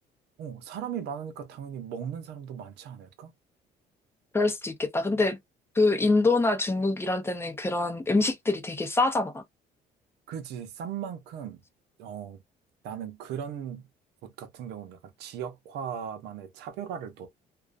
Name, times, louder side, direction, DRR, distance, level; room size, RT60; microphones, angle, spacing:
voice 1, 0.4-3.3 10.3-11.6 12.0-12.4 12.8-13.8 14.2-17.3, right 8 dB, 80° right, 0.7 m, -37 dB
voice 2, 4.3-5.4 5.8-9.4, left 3 dB, 15° left, 0.6 m, -25 dB
2.4 x 2.1 x 2.4 m
cardioid pair, 110°, 17 cm